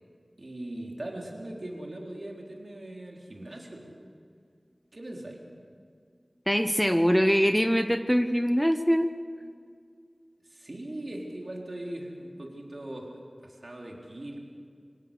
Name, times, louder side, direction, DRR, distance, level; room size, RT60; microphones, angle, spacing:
voice 1, 0.4-4.0 4.9-5.4 10.5-13.2 13.4-14.4, right 1 dB, 60° right, -1 dB, 4.1 m, -40 dB
voice 2, 6.5-9.1, equal, 5° left, 9 dB, 0.9 m, -23 dB
26.0 x 17.5 x 6.9 m, 2.1 s
wide cardioid pair, 45°, 0 cm